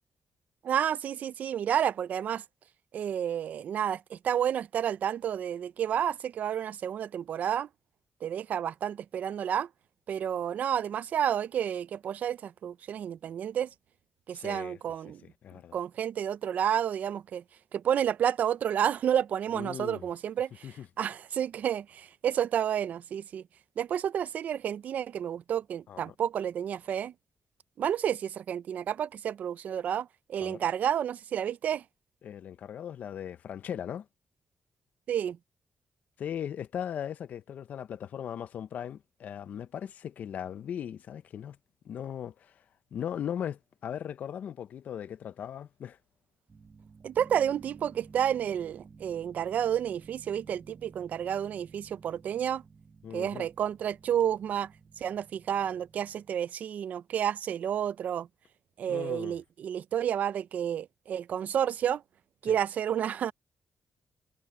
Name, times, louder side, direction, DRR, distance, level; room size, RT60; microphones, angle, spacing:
voice 1, 0.6-2.4 2.9-7.7 8.2-9.7 10.1-13.7 14.3-15.2 15.7-17.4 17.7-20.7 21.0-23.4 23.8-27.1 27.8-31.8 35.1-35.4 47.0-52.6 53.1-54.7 55.0-58.3 58.8-62.0 62.4-63.3, right 9 dB, 70° right, 0.4 m, -30 dB
voice 2, 14.3-14.8 15.0-15.8 19.5-20.1 20.6-20.9 25.9-26.1 30.4-30.6 32.2-34.1 36.2-41.6 41.8-42.6 42.9-46.0 53.0-53.5 58.9-59.3 62.4-62.6, left 9 dB, 70° left, 0.7 m, -38 dB
sound 1, 46.5-56.4, right 4 dB, 35° right, 1.1 m, -54 dB
cardioid pair, 120°, 3 cm